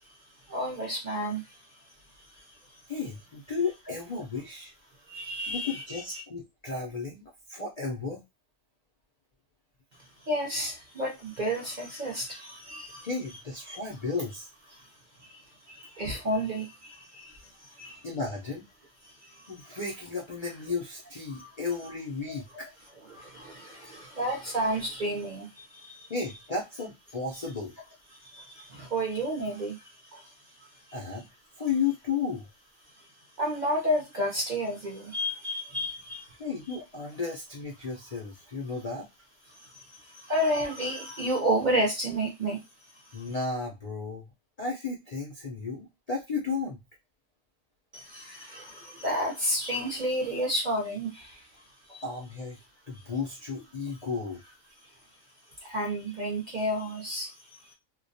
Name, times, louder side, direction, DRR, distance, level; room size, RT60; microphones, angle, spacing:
voice 1, 0.0-2.8 5.0-6.2 10.0-13.1 13.7-13.8 14.7-18.1 19.0-19.8 21.3-21.5 22.2-22.7 23.1-26.1 28.1-31.2 32.9-33.1 33.4-36.4 36.7-36.8 39.5-42.7 42.9-43.3 47.9-52.0 54.8-54.9 55.6-57.7, equal, 55° right, -1 dB, 0.5 m, -32 dB
voice 2, 2.9-4.7 5.5-8.2 13.0-14.5 18.0-18.7 19.5-22.7 26.1-27.7 30.9-31.3 31.6-32.5 36.4-39.1 43.1-44.3 44.6-46.8 52.0-52.6 52.9-54.4, left 4 dB, 65° left, -1 dB, 0.3 m, -34 dB
2.3 x 2.1 x 2.6 m, 0.23 s
omnidirectional pair, 1.4 m